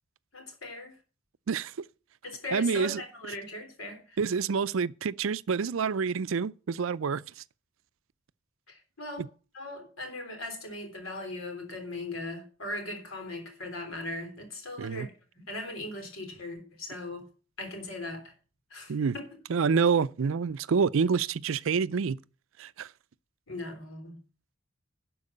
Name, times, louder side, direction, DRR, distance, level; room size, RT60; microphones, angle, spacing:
voice 1, 0.3-1.0 2.2-4.2 8.7-9.3 9.5-15.1 15.4-17.3 17.6-18.3 18.7-19.3 23.5-24.2, left 2 dB, 85° left, 3.7 m, -39 dB
voice 2, 1.5-1.9 2.5-3.0 4.2-7.2 9.2-9.3 14.8-15.1 18.9-19.1 19.5-22.2 22.6-22.9, right 5 dB, 75° right, 0.5 m, -27 dB
12.0 x 4.7 x 8.4 m
head